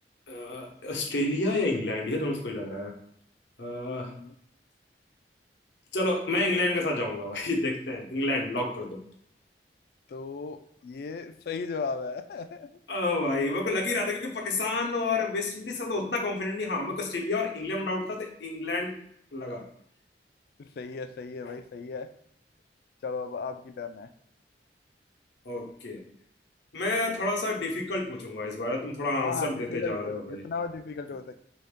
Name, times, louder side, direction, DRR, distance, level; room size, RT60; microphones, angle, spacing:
voice 1, 0.3-2.9 3.6-4.1 5.9-9.0 12.9-19.0 19.3-19.7 25.4-26.0 26.7-30.5, left 2 dB, 80° left, 1 dB, 0.8 m, -29 dB
voice 2, 4.0-4.3 10.1-12.7 20.6-22.1 23.0-24.1 29.2-31.3, left 4 dB, 60° left, 9 dB, 0.3 m, -36 dB
3.3 x 2.6 x 3.6 m, 0.71 s
head